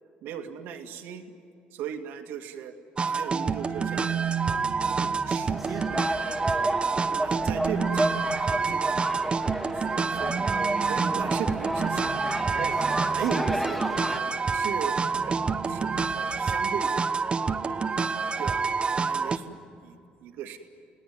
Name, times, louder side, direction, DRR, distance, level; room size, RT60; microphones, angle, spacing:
voice 1, 0.2-1.3 1.7-2.7 3.0-6.5 7.1-10.4 10.9-12.7 13.0-17.1 17.4-18.0 18.4-20.6, right 8 dB, 80° right, 5 dB, 2.2 m, -38 dB
sound 1, 3.0-19.4, right 5 dB, 30° right, 1.1 m, -28 dB
sound 2, 3.3-6.6 7.3-13.9 14.9-16.8, right 7 dB, 45° right, 1.5 m, -36 dB
sound 3, 5.5-14.2, right 1 dB, ahead, 2.4 m, -31 dB
29.0 x 18.5 x 9.5 m, 2.5 s
supercardioid pair, 85°, 4 cm